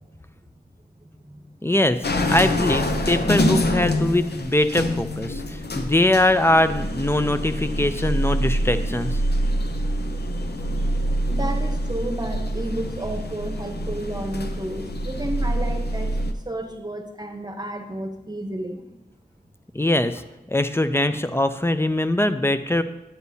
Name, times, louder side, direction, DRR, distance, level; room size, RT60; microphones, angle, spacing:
voice 1, 1.6-2.0 2.3-5.4 5.8-9.2 19.7-20.2 20.5-22.8, left 1 dB, 15° left, 10 dB, 0.5 m, -21 dB
sound 1, 2.0-16.3, equal, 90° left, 0.6 m, -25 dB
voice 2, 11.3-16.2 16.4-18.9, right 1 dB, 25° right, 4 dB, 1.0 m, -32 dB
9.6 x 8.1 x 2.8 m, 0.95 s
wide cardioid pair, 50°, 16 cm